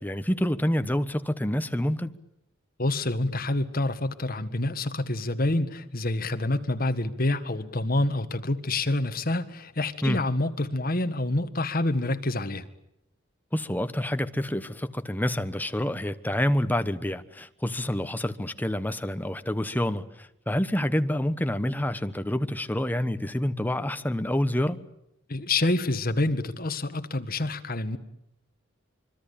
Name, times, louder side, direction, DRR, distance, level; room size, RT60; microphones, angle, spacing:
voice 1, 0.0-2.1 10.0-10.2 13.5-24.8, left 1 dB, 10° left, 1.1 m, -27 dB
voice 2, 2.8-12.6 25.3-28.0, left 2 dB, 45° left, 1.7 m, -27 dB
25.5 x 23.5 x 8.6 m
head